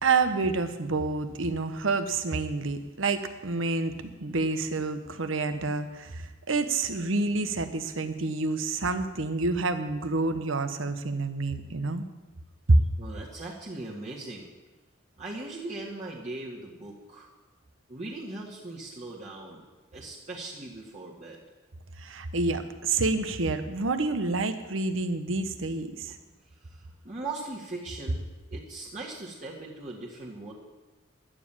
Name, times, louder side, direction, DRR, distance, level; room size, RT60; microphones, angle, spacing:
voice 1, 0.0-12.0 12.7-12.8 22.0-26.1, right 3 dB, 75° right, 9 dB, 1.0 m, -28 dB
voice 2, 13.0-14.5 15.2-17.3 17.9-19.6 19.9-21.4 26.6-30.5, right 2 dB, 35° right, -5 dB, 1.8 m, -39 dB
11.5 x 7.4 x 8.7 m, 1.1 s
head